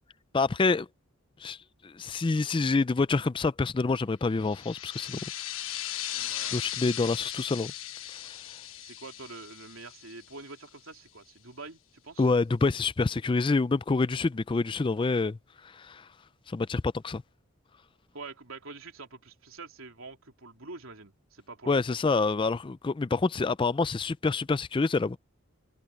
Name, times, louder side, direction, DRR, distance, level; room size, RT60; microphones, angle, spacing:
voice 1, 0.3-0.9 1.4-1.6 1.8-5.2 6.1-7.7 8.1-8.4 12.2-16.1 16.5-17.2 21.7-25.2, left 3 dB, 25° left, 0.3 m, -27 dB
sound 1, 4.4-10.7, left 12 dB, 70° left, 1.3 m, -38 dB
voice 2, 6.1-6.6 8.8-12.3 18.1-22.0, right 3 dB, 75° right, 3.3 m, -46 dB
head